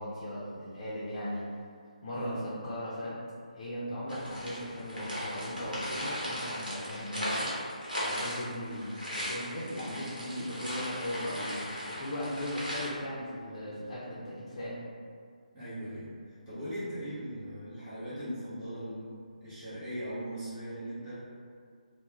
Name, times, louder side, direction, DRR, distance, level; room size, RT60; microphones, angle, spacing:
voice 1, 0.0-1.5 2.0-2.4 2.6-3.1 3.5-7.5 8.0-8.9 9.1-14.8, left 1 dB, 30° left, -8 dB, 0.4 m, -38 dB
voice 2, 2.1-2.6 15.5-16.1 16.5-21.1, equal, 15° right, -13 dB, 0.6 m, -39 dB
sound 1, 4.1-12.9, equal, 90° right, 0.9 m, -37 dB
2.2 x 2.0 x 3.0 m, 2.1 s
figure-of-eight pair, 145°, 4 cm